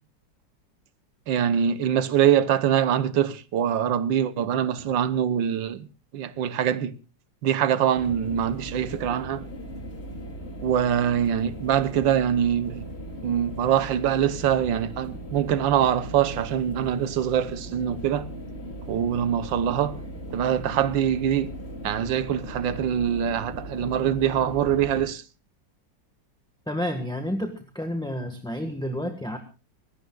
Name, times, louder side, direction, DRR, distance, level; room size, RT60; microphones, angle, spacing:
voice 1, 1.3-5.9 6.1-6.9 7.4-9.5 10.6-12.9 13.2-18.3 18.9-20.0 20.3-21.5 21.8-25.2, right 9 dB, 80° right, 1.6 m, -24 dB
sound 1, 7.9-25.0, right 1 dB, 35° left, 2.8 m, -38 dB
voice 2, 26.7-29.4, equal, 5° left, 1.2 m, -30 dB
23.5 x 17.0 x 2.3 m
omnidirectional pair, 2.0 m